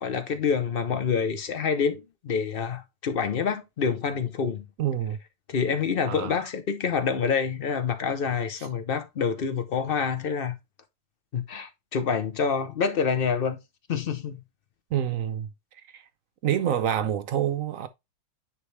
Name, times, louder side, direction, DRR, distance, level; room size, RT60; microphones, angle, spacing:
voice 1, 0.0-4.6 5.5-10.5 11.3-13.6 13.9-14.4, left 6 dB, 50° left, 0.6 m, -27 dB
voice 2, 4.8-5.2 6.1-6.4 8.6-8.7 14.9-15.5 15.9-16.0 16.4-17.9, right 10 dB, 65° right, 0.8 m, -27 dB
9.8 x 3.4 x 3.2 m
omnidirectional pair, 1.9 m